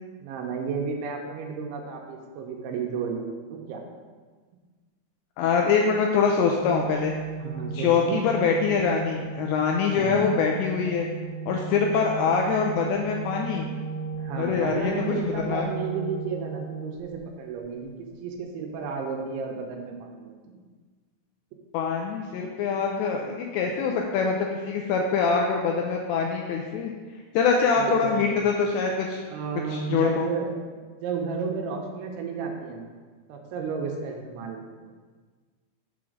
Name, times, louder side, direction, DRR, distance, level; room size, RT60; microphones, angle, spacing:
voice 1, 0.2-3.8 7.4-8.2 8.7-8.8 9.9-10.2 14.2-20.6 27.8-28.3 29.3-30.5 31.0-32.9 33.3-34.9, right 5 dB, 80° right, 2 dB, 3.0 m, -32 dB
voice 2, 5.4-7.1 7.7-11.1 11.5-13.7 14.4-15.1 15.5-15.6 21.7-26.9 27.3-29.2 29.7-30.3, left 5 dB, 85° left, 1 dB, 2.5 m, -24 dB
Organ, 6.5-17.4, right 5 dB, 65° left, 3.3 m, -35 dB
7.0 x 4.9 x 6.3 m, 1.5 s
omnidirectional pair, 5.6 m